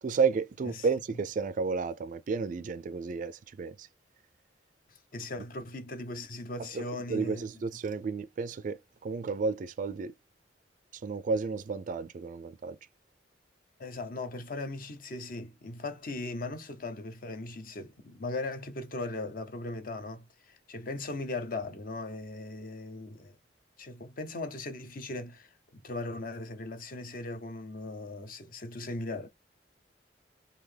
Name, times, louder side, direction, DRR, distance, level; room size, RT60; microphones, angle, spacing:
voice 1, 0.0-3.9 6.7-6.8 7.1-10.1 11.0-12.8, right 4 dB, 45° right, 0.3 m, -32 dB
voice 2, 4.9-7.5 13.8-23.4 23.8-29.3, left 2 dB, 50° left, 0.7 m, -38 dB
3.9 x 2.8 x 3.3 m
head